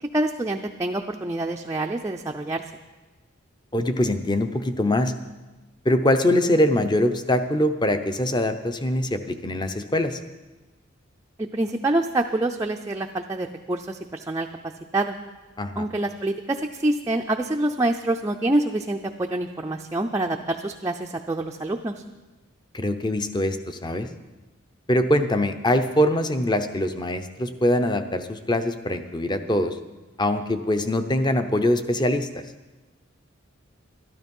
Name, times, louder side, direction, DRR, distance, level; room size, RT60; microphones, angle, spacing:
voice 1, 0.0-2.6 11.4-14.5 14.9-15.1 15.8-21.9, right 2 dB, 15° right, 2 dB, 0.4 m, -26 dB
voice 2, 3.7-5.1 5.8-10.2 15.6-15.9 22.7-24.1 24.9-29.7 30.2-32.4, left 1 dB, 20° left, 9 dB, 0.7 m, -23 dB
12.5 x 12.5 x 5.4 m, 1.2 s
head